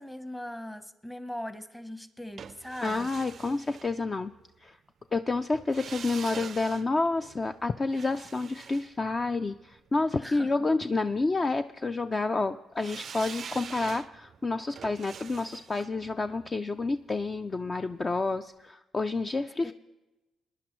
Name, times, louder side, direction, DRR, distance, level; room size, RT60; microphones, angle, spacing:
voice 1, 0.0-3.1 10.2-10.5 19.6-19.7, left 1 dB, 10° left, 11 dB, 0.9 m, -40 dB
sound 1, 2.4-4.5 5.5-9.8 12.8-17.8 18.1-18.2, right 7 dB, 55° right, 0.4 m, -45 dB
voice 2, 2.8-4.3 4.6-4.8 5.1-19.7, left 3 dB, 30° left, 9 dB, 0.4 m, -29 dB
20.5 x 10.5 x 3.1 m, 1.0 s
cardioid pair, 90°, 0 cm